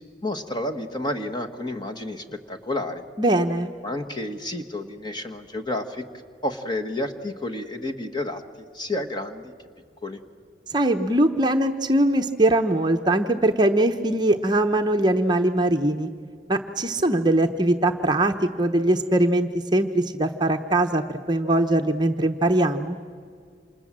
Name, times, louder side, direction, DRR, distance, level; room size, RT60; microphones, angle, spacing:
voice 1, 0.2-3.0 3.8-6.0 6.4-9.5 10.0-10.2, left 1 dB, 20° left, 5 dB, 1.4 m, -30 dB
voice 2, 3.2-3.7 10.7-16.1 16.5-23.0, right 1 dB, 20° right, 5 dB, 0.9 m, -21 dB
29.0 x 27.0 x 7.5 m, 2.1 s
head